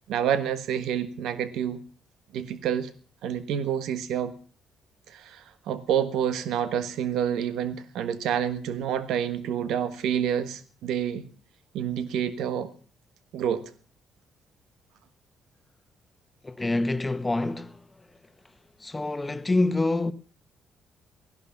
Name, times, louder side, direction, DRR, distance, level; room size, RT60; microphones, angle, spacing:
voice 1, 0.1-1.8 2.3-2.9 3.2-4.3 5.1-11.2 11.7-12.7 13.3-13.7, right 9 dB, 85° right, 1.4 m, -28 dB
voice 2, 16.4-18.1 18.8-20.1, left 2 dB, 20° left, 1.2 m, -26 dB
17.0 x 11.5 x 7.2 m
cardioid pair, 90°, 0 cm